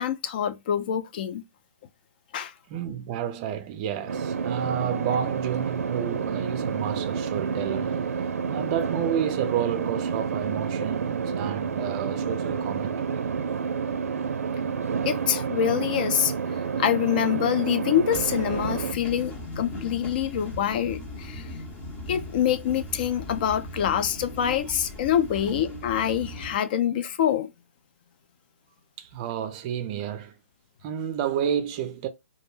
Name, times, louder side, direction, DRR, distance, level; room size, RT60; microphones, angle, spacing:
voice 1, 0.0-1.4 2.3-2.5 15.1-16.3 16.8-21.5 22.1-27.5, left 10 dB, 40° left, 0.4 m, -25 dB
voice 2, 2.7-8.1 8.5-13.2 29.0-30.3 30.8-32.1, right 9 dB, 30° right, 0.4 m, -30 dB
sound 1, 4.1-18.9, right 6 dB, 85° right, 0.4 m, -29 dB
sound 2, 18.1-26.5, left 1 dB, 20° left, 0.8 m, -38 dB
2.3 x 2.1 x 3.0 m
hypercardioid pair, 155°, 8 cm